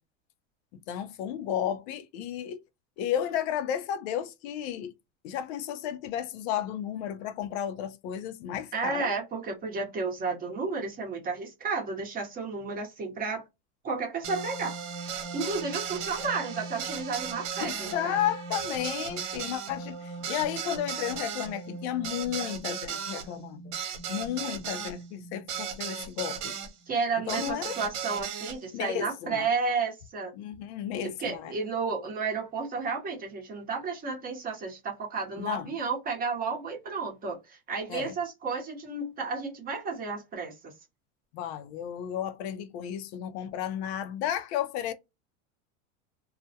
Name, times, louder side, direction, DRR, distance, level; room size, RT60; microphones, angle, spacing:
voice 1, 0.9-2.6 3.0-4.9 5.2-9.1 17.6-23.8 24.1-26.6 27.3-27.8 28.7-29.5 30.4-31.5 35.4-35.7 37.9-38.1 41.3-44.9, left 10 dB, 60° left, 0.5 m, -33 dB
voice 2, 8.7-13.4 13.8-14.8 15.3-18.2 26.9-30.3 31.0-40.7, right 4 dB, 25° right, 0.8 m, -32 dB
sound 1, 14.2-26.7 27.3-28.6, right 7 dB, 75° right, 0.8 m, -36 dB
2.2 x 2.0 x 2.6 m
supercardioid pair, 135°, 37 cm